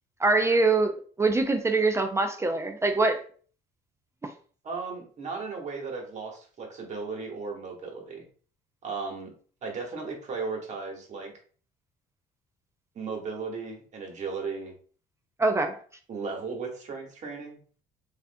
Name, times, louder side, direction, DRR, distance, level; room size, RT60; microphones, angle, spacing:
voice 1, 0.2-0.9 1.2-3.2 4.2-4.3 15.4-15.8, right 3 dB, 15° right, 5 dB, 0.4 m, -23 dB
voice 2, 4.6-8.2 8.8-9.3 9.6-11.3 12.9-14.7 16.1-17.6, right 4 dB, 45° right, 1 dB, 1.1 m, -36 dB
3.2 x 2.5 x 2.6 m, 0.43 s
cardioid pair, 110°, 17 cm